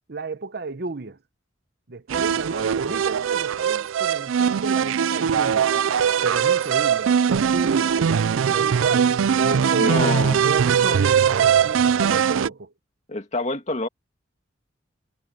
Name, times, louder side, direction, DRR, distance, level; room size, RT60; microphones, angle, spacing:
voice 1, 0.1-1.2 1.9-5.7 6.2-9.1 9.4-10.2 10.4-12.7, right 3 dB, 55° right, 0.8 m, -31 dB
sound 1, 2.1-12.5, right 7 dB, 85° right, 0.4 m, -21 dB
voice 2, 9.8-10.4 13.1-13.9, left 2 dB, 35° left, 2.4 m, -26 dB
head